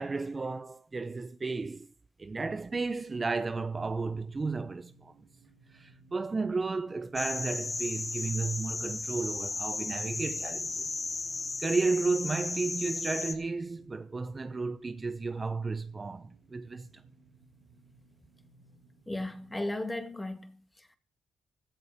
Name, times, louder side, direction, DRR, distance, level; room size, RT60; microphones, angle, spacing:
voice 1, 0.0-1.9 2.2-5.1 5.7-10.9 11.6-16.9, right 3 dB, 25° right, 0.9 m, -33 dB
sound 1, 3.6-19.6, right 3 dB, 85° right, 5.4 m, -61 dB
sound 2, 7.2-13.4, left 3 dB, 25° left, 2.5 m, -35 dB
voice 2, 19.1-21.0, left 1 dB, 10° left, 2.2 m, -36 dB
17.0 x 13.0 x 5.1 m
cardioid pair, 90°, 0 cm